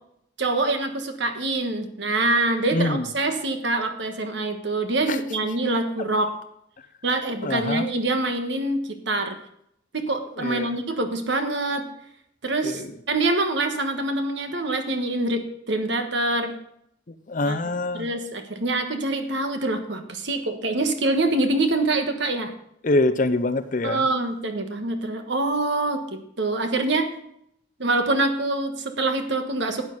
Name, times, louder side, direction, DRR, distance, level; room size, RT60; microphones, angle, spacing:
voice 1, 0.4-6.3 7.0-9.4 9.9-11.8 12.4-16.5 17.4-17.6 17.9-22.5 23.8-27.1 27.8-29.8, right 2 dB, 60° right, 1.4 m, -25 dB
voice 2, 2.7-3.1 5.1-5.2 6.0-6.1 7.4-7.9 10.4-10.7 12.6-12.9 17.3-18.1 22.8-24.0, left 2 dB, 40° left, 0.6 m, -24 dB
12.0 x 9.2 x 4.0 m
head